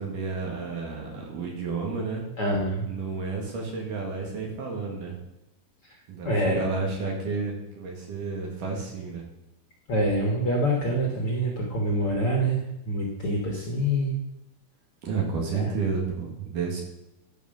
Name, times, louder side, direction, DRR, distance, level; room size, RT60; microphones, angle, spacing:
voice 1, 0.0-2.2 2.9-5.1 6.1-9.2 15.0-16.8, right 4 dB, 60° right, 0 dB, 3.1 m, -31 dB
voice 2, 2.4-2.9 6.3-6.7 9.9-14.2 15.4-15.7, equal, 55° left, -2 dB, 1.7 m, -26 dB
11.0 x 5.1 x 6.3 m, 0.86 s
omnidirectional pair, 4.4 m